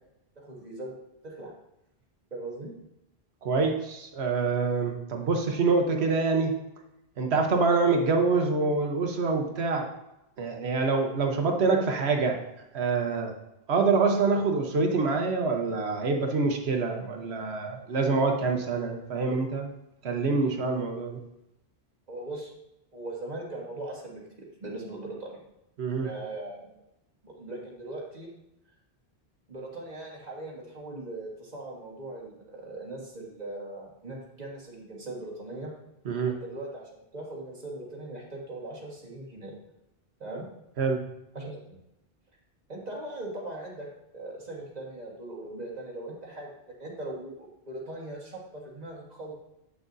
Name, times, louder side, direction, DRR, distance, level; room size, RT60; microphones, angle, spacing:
voice 1, 0.4-0.9 1.2-1.5 2.3-2.7 22.1-22.5 22.9-25.4 26.0-26.7 27.2-28.3 29.5-35.7 36.3-39.5 40.2-40.5 41.3-41.8 42.7-43.9 44.1-46.5 46.8-49.3, right 2 dB, 40° right, -3 dB, 1.7 m, -39 dB
voice 2, 3.4-6.5 7.2-9.9 10.4-12.4 12.7-13.3 13.7-19.7 20.0-21.2 25.8-26.1 36.0-36.3 40.8-41.0, right 4 dB, 90° right, 3 dB, 1.2 m, -26 dB
8.2 x 6.1 x 2.6 m, 0.87 s
omnidirectional pair, 1.1 m